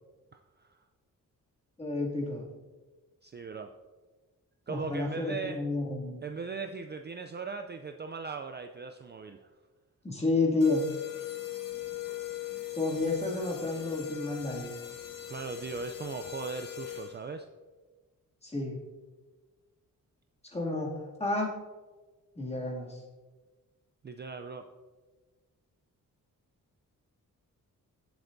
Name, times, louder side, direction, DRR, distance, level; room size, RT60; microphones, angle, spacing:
voice 1, 0.3-0.8 3.2-3.7 4.7-5.6 6.2-9.5 15.3-17.5 24.0-24.7, right 5 dB, 30° right, 6 dB, 0.4 m, -39 dB
voice 2, 1.8-2.5 4.7-6.2 10.0-10.9 12.7-14.7 18.4-18.8 20.5-21.5 22.4-23.0, left 2 dB, 20° left, -3 dB, 2.4 m, -30 dB
sound 1, 10.6-17.4, left 13 dB, 75° left, 1.7 m, -40 dB
15.5 x 7.9 x 2.6 m, 1.3 s
wide cardioid pair, 125°, 33 cm